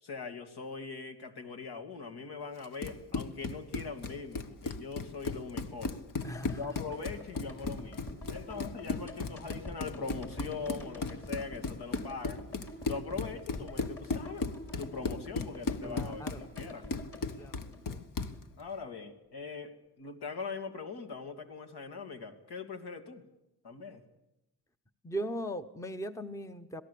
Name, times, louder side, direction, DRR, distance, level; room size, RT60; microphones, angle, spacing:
voice 1, 0.0-6.0 6.6-12.5 12.9-14.5 14.8-16.9 18.6-23.2 23.6-24.0, left 4 dB, 65° left, 6 dB, 2.7 m, -41 dB
Run, 2.6-18.4, left 3 dB, 50° left, 1.4 m, -37 dB
sound 1, 6.2-18.4 18.6-18.7, left 1 dB, 35° left, 5.9 m, -47 dB
voice 2, 6.2-6.7 15.8-16.4 17.4-18.0 25.0-26.8, right 1 dB, 5° left, 10 dB, 0.9 m, -39 dB
26.5 x 18.5 x 8.5 m, 0.90 s
wide cardioid pair, 125°, 41 cm